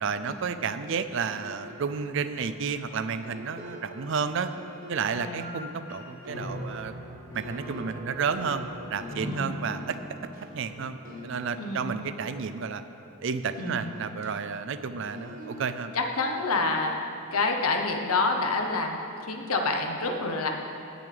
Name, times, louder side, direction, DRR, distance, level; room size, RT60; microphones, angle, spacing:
voice 1, 0.0-4.5 4.9-6.9 7.3-10.0 10.5-11.0 11.2-12.8 13.2-15.9, right 6 dB, 55° right, 11 dB, 0.4 m, -31 dB
sound 1, 1.3-13.2 13.5-18.8, equal, 40° right, 1.3 m, -46 dB
voice 2, 5.1-5.5 9.2-9.7 11.6-11.8 13.6-14.0 15.9-16.9 17.3-20.5, left 3 dB, 80° left, 3 dB, 0.9 m, -28 dB
sound 2, 6.2-14.6, left 1 dB, 30° left, 2.6 m, -43 dB
17.0 x 7.0 x 3.4 m, 2.9 s
head